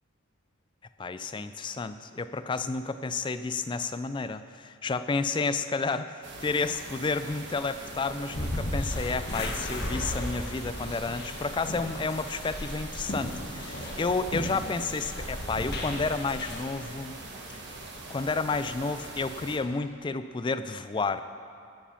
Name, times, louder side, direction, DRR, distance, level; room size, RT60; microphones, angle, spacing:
voice 1, 1.0-17.2 18.1-21.2, left 4 dB, 20° left, 11 dB, 0.3 m, -31 dB
sound 1, 6.2-19.6, right 2 dB, 55° right, 1.4 m, -42 dB
sound 2, 8.3-16.6, left 1 dB, 50° left, 1.4 m, -35 dB
14.0 x 7.4 x 5.7 m, 2.5 s
head